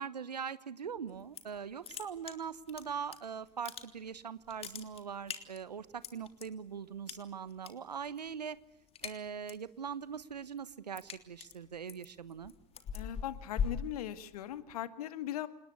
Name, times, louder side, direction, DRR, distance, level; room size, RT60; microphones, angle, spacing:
voice 1, 0.0-8.6 9.0-12.5, right 7 dB, 80° right, 16 dB, 1.3 m, -41 dB
sound 1, 1.1-1.6 1.8-3.2 3.5-4.2 4.4-6.5 7.1-7.7 8.0-8.3 8.6-9.7 10.1-14.6, left 7 dB, 30° left, 3.3 m, -41 dB
voice 2, 12.9-15.5, left 12 dB, 65° left, 11 dB, 2.1 m, -39 dB
28.0 x 20.0 x 8.4 m, 0.74 s
figure-of-eight pair, 90°, 21 cm